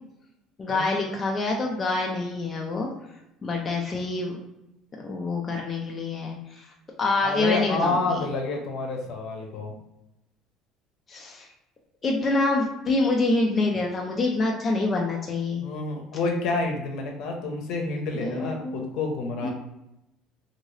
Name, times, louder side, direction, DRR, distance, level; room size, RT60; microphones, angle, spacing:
voice 1, 0.6-2.9 3.4-4.4 5.0-6.7 7.0-8.2 11.1-11.5 12.0-15.6 18.1-18.9 19.4-19.5, left 3 dB, 20° left, -1 dB, 0.4 m, -26 dB
voice 2, 7.2-9.8 15.5-19.5, left 3 dB, 60° left, 2 dB, 0.7 m, -29 dB
2.7 x 2.7 x 3.1 m, 0.87 s
cardioid pair, 150°, 0 cm